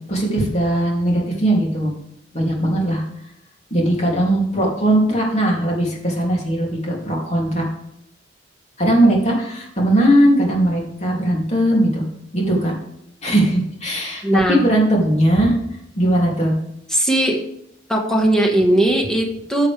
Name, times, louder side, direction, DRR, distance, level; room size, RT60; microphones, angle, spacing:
voice 1, 0.1-1.9 2.3-3.0 3.7-7.7 8.8-12.1 12.3-12.7 13.2-15.5 15.9-16.6, right 1 dB, 35° left, -2 dB, 2.8 m, -19 dB
voice 2, 14.2-14.6 16.9-17.4 17.9-19.7, right 1 dB, 5° left, 1 dB, 1.4 m, -18 dB
13.5 x 7.4 x 3.4 m, 0.77 s
head